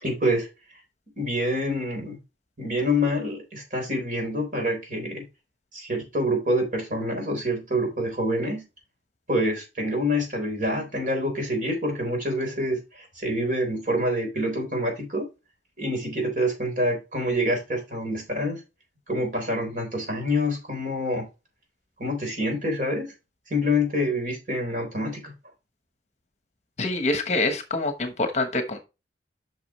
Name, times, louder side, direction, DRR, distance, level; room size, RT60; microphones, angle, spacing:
voice 1, 0.0-0.5 1.2-2.2 2.6-5.2 5.7-8.7 9.3-15.3 15.8-18.6 19.1-21.3 22.0-23.1 23.5-25.3, equal, 45° right, 3.9 m, -26 dB
voice 2, 26.8-28.8, left 2 dB, 40° left, 1.1 m, -25 dB
8.4 x 6.1 x 3.1 m
head